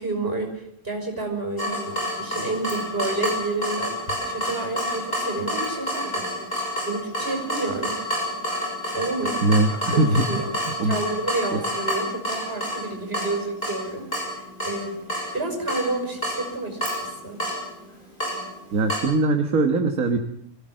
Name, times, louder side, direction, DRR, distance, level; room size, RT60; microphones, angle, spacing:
voice 1, 0.0-6.5 6.8-8.0 8.9-9.4 9.7-10.6 10.8-14.3 14.6-15.0 15.3-17.4, right 2 dB, 40° right, 3 dB, 6.0 m, -30 dB
Water tap faucet / Drip, 1.6-19.0, equal, 30° left, 7.3 m, -29 dB
voice 2, 9.4-10.3 10.8-11.0 11.5-11.6 18.7-20.2, right 2 dB, 70° right, 5 dB, 1.8 m, -21 dB
25.0 x 16.5 x 7.7 m, 0.69 s
omnidirectional pair, 1.5 m